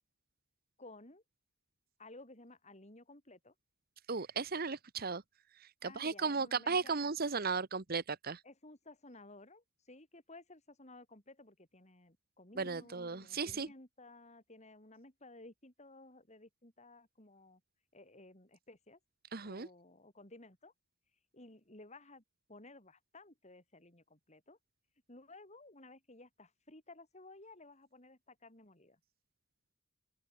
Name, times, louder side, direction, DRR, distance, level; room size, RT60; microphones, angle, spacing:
voice 1, 0.8-1.2 2.0-3.5 5.8-7.0 8.4-17.6 17.9-19.0 19.4-20.7 21.3-22.2 22.5-24.6 25.1-29.0, left 2 dB, 35° left, 5.4 m, -56 dB
voice 2, 4.1-5.2 5.8-8.4 12.6-13.7 19.3-19.7, right 4 dB, 50° right, 1.1 m, -35 dB
open air
head